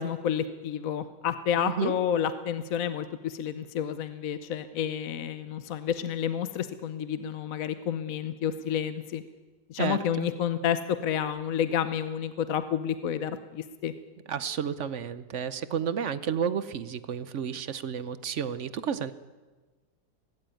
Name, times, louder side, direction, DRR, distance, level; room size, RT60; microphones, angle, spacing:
voice 1, 0.0-9.2 9.7-13.9, left 9 dB, 60° left, 11 dB, 1.1 m, -30 dB
voice 2, 1.6-1.9 9.8-10.3 14.3-19.1, right 7 dB, 55° right, 14 dB, 0.9 m, -31 dB
18.0 x 16.0 x 9.1 m, 1.3 s
omnidirectional pair, 1.8 m